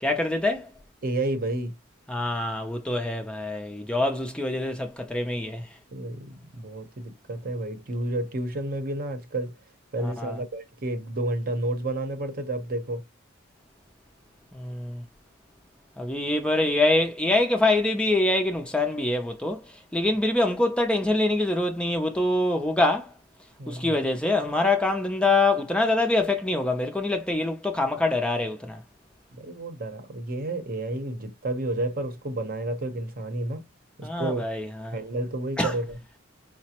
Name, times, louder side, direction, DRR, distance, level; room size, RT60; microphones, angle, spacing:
voice 1, 0.0-0.7 2.1-5.7 10.0-10.4 14.5-15.0 16.0-23.1 23.7-28.8 34.0-35.0 35.6-35.7, left 2 dB, 5° left, 0.5 m, -25 dB
voice 2, 1.0-1.8 5.9-9.5 9.9-13.0 23.6-24.0 29.3-33.6 34.0-34.4 34.9-36.0, right 1 dB, 45° right, 0.8 m, -31 dB
4.9 x 2.0 x 2.8 m
head